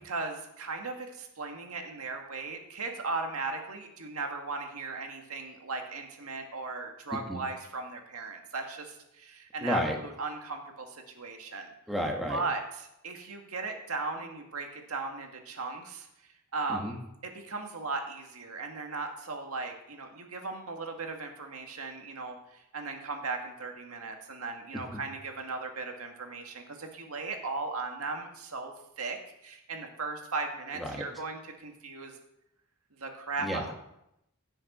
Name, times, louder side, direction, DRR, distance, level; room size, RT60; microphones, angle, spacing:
voice 1, 0.0-11.7 12.3-16.1 16.5-29.2 29.4-32.2 33.0-33.7, right 3 dB, 90° right, 3 dB, 1.8 m, -37 dB
voice 2, 9.6-10.0 11.9-12.4 16.7-16.9 24.7-25.0 30.7-31.0 33.4-33.6, equal, ahead, 0 dB, 1.5 m, -32 dB
16.5 x 6.5 x 4.3 m, 0.82 s
head